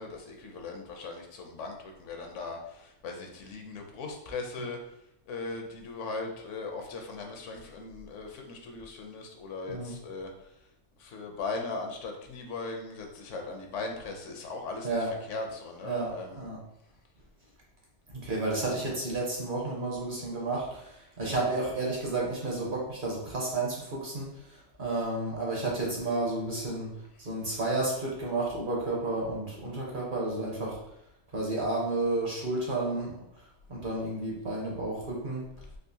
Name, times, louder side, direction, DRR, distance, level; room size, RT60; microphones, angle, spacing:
voice 1, 0.0-5.0 5.3-10.7 11.0-14.9 15.3-16.5, left 3 dB, 75° left, 2 dB, 0.9 m, -39 dB
voice 2, 15.8-16.6 18.1-26.9 27.2-30.8 31.3-33.2 33.7-35.4, right 2 dB, 45° right, -3 dB, 0.9 m, -31 dB
3.6 x 2.5 x 2.6 m, 0.79 s
omnidirectional pair, 1.3 m